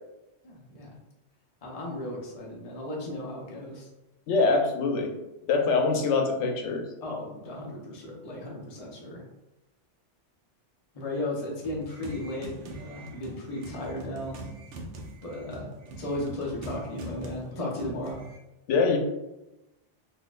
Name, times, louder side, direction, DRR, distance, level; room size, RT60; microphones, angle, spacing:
voice 1, 0.4-0.9 1.6-3.9 7.0-9.2 10.9-14.4 15.2-15.7 16.0-18.2, left 1 dB, 40° left, -3 dB, 0.7 m, -35 dB
voice 2, 4.3-5.1 5.5-6.9 18.7-19.0, left 4 dB, 90° left, 4 dB, 0.9 m, -24 dB
sound 1, 11.6-18.4, right 2 dB, 90° right, 1.0 m, -43 dB
4.1 x 2.6 x 2.4 m, 0.96 s
omnidirectional pair, 1.2 m